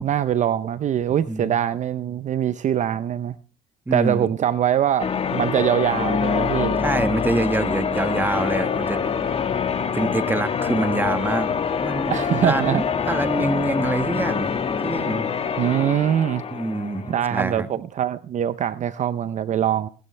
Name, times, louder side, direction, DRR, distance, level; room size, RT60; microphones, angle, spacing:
voice 1, 0.0-3.4 3.9-6.8 12.1-12.8 15.6-16.4 17.1-19.9, right 10 dB, 45° right, 14 dB, 0.6 m, -23 dB
voice 2, 3.9-4.3 6.8-9.3 9.8-11.5 11.8-12.1 12.4-15.3 16.5-17.7, right 2 dB, 10° right, 10 dB, 1.4 m, -26 dB
Church bell, 5.0-17.3, left 6 dB, 35° left, 1.4 m, -25 dB
19.0 x 12.5 x 3.2 m, 0.37 s
cardioid pair, 110°, 17 cm